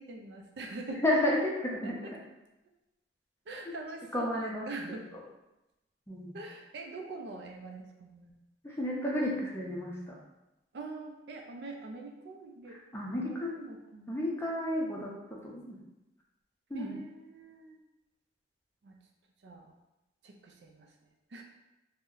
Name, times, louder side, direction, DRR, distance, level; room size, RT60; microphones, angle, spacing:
voice 1, 0.0-1.0 1.8-2.1 3.5-5.1 6.3-8.3 10.7-12.8 13.3-14.2 16.7-17.8 18.8-19.0 19.4-19.7 20.2-20.9 21.3-21.4, right 3 dB, 75° right, 3 dB, 0.4 m, -44 dB
voice 2, 1.0-1.9 3.7-3.8 4.1-4.6 6.1-6.3 8.6-10.1 12.9-13.5 14.1-15.1 15.4-15.8 16.7-16.9, left 1 dB, 15° left, -3 dB, 0.5 m, -31 dB
2.6 x 2.1 x 3.7 m, 0.96 s
head